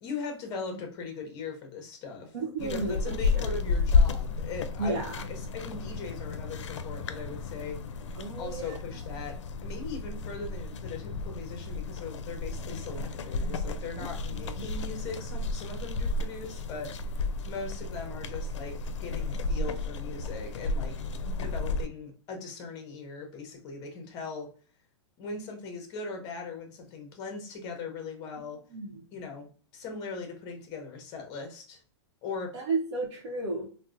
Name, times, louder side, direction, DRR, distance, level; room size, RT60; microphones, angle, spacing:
voice 1, 0.0-7.8 8.4-16.9 17.5-21.0 21.4-24.5 25.2-28.6 29.1-31.8 32.2-32.5, left 4 dB, 25° left, 3 dB, 0.7 m, -39 dB
voice 2, 2.3-3.2 4.8-5.1 8.2-8.7 14.6-14.7 21.3-21.4 28.7-29.0 32.5-33.7, right 3 dB, 75° right, -2 dB, 0.8 m, -32 dB
sound 1, 2.6-21.9, left 3 dB, 90° left, 0.4 m, -32 dB
3.9 x 2.1 x 2.4 m, 0.41 s
hypercardioid pair, 160°, 15 cm